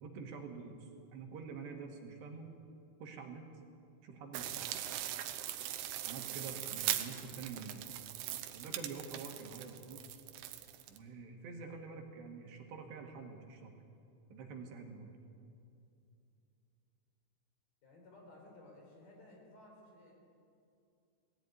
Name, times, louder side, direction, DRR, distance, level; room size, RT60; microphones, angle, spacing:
voice 1, 0.0-2.5 3.0-3.4 4.0-4.7 6.1-7.8 8.5-10.2 10.9-13.7 14.3-15.1, right 5 dB, 70° right, 2 dB, 3.8 m, -47 dB
sound 1, 4.3-11.0, right 12 dB, 90° right, 3.3 m, -40 dB
voice 2, 6.5-7.1 17.8-20.1, left 2 dB, 55° left, -1 dB, 6.1 m, -57 dB
19.5 x 15.5 x 9.4 m, 2.5 s
omnidirectional pair, 5.3 m